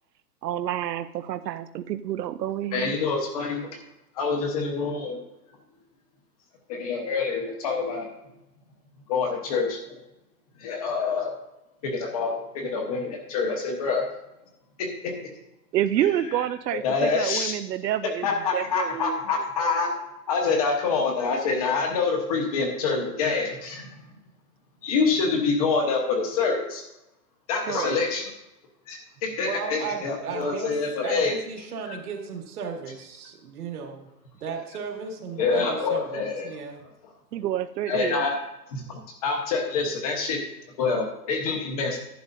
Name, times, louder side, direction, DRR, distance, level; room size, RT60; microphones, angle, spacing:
voice 1, 0.4-3.0 15.7-19.2 27.7-28.0 37.3-38.2, right 11 dB, 90° right, 12 dB, 0.7 m, -28 dB
voice 2, 2.7-3.8 4.2-5.2 6.7-8.1 9.1-10.0 10.6-11.3 11.8-14.1 14.8-15.3 16.8-17.6 18.2-19.9 20.3-23.9 24.8-26.8 27.5-28.3 28.9-31.3 31.9-32.0 35.4-36.5 37.9-38.4 38.7-40.4 40.8-42.0, left 4 dB, 25° left, 3 dB, 1.0 m, -26 dB
voice 3, 29.4-30.7 31.0-34.1 34.4-36.8, right 5 dB, 65° right, 2 dB, 2.2 m, -35 dB
11.0 x 10.5 x 2.6 m, 0.90 s
hypercardioid pair, 175°, 48 cm